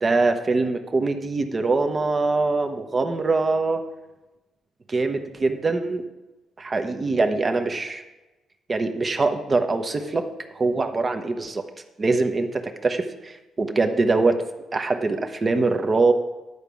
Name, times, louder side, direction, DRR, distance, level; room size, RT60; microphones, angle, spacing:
voice 1, 0.0-3.8 4.9-6.0 6.6-8.0 8.7-10.3 10.5-11.6 12.0-14.4 14.7-16.1, right 3 dB, 30° right, 6 dB, 1.0 m, -23 dB
11.0 x 4.9 x 7.0 m, 1.1 s
cardioid pair, 90°, 0 cm